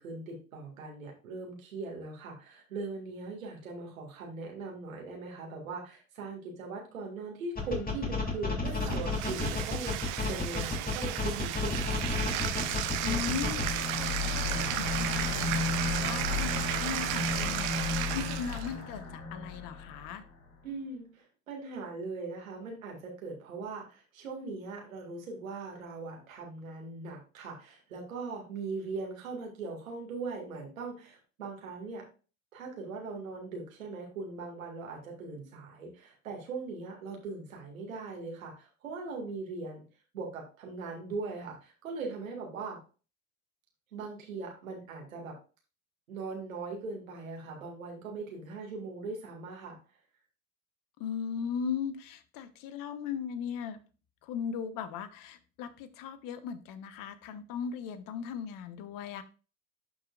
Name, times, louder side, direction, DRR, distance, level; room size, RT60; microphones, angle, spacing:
voice 1, 0.0-10.0 10.3-12.0 20.6-32.1 32.5-39.8 40.1-42.8 43.9-45.4 46.1-49.8, right 3 dB, 85° right, 0 dB, 2.1 m, -40 dB
sound 1, 7.6-13.6, left 3 dB, 20° left, 2.9 m, -31 dB
Bathtub (filling or washing), 8.7-18.7, right 14 dB, 60° right, 0.9 m, -34 dB
sound 2, 11.6-20.2, left 3 dB, 85° left, 2.4 m, -34 dB
voice 2, 13.0-20.2 51.0-53.8 54.2-59.2, left 7 dB, 55° left, 12 dB, 1.1 m, -38 dB
11.5 x 4.9 x 2.4 m, 0.35 s
hypercardioid pair, 70°, 40 cm